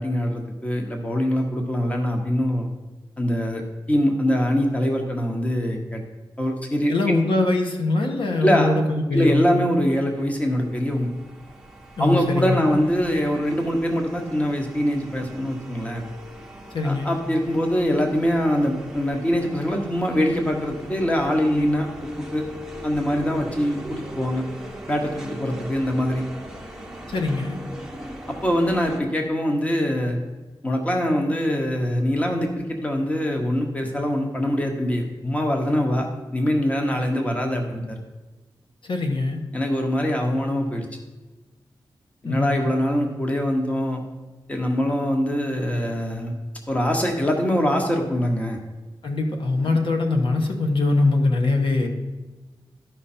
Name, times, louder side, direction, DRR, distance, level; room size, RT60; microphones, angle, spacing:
voice 1, 0.0-2.7 3.2-3.6 3.9-6.0 6.4-7.1 8.4-8.7 9.1-11.1 12.0-16.0 16.8-21.9 22.3-22.4 22.8-24.4 24.9-26.2 28.4-30.2 30.6-36.1 36.3-38.0 39.5-40.9 42.2-44.0 44.5-46.3 46.7-48.6 49.6-49.8, equal, 15° left, 2 dB, 1.1 m, -23 dB
voice 2, 6.9-9.5 12.0-12.7 16.7-17.1 27.1-27.6 38.8-39.4 42.2-42.7 49.0-51.9, left 2 dB, 70° left, 3 dB, 1.2 m, -22 dB
sound 1, 10.1-29.0, equal, 5° right, 0.9 m, -40 dB
12.5 x 5.2 x 4.3 m, 1.2 s
wide cardioid pair, 140°, 9 cm